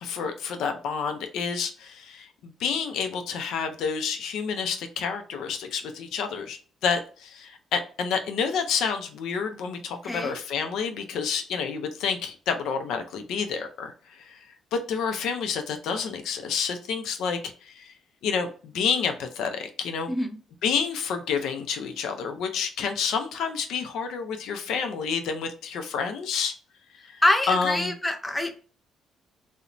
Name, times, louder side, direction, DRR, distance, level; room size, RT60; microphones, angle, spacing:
voice 1, 0.0-14.4 14.7-17.9 18.2-20.1 20.6-26.5 27.1-27.9, left 6 dB, 80° left, 6 dB, 0.4 m, -29 dB
voice 2, 10.0-10.3 20.1-20.3 27.2-28.6, left 1 dB, 10° left, 5 dB, 0.4 m, -25 dB
2.5 x 2.0 x 2.9 m, 0.40 s
cardioid pair, 90°, 0 cm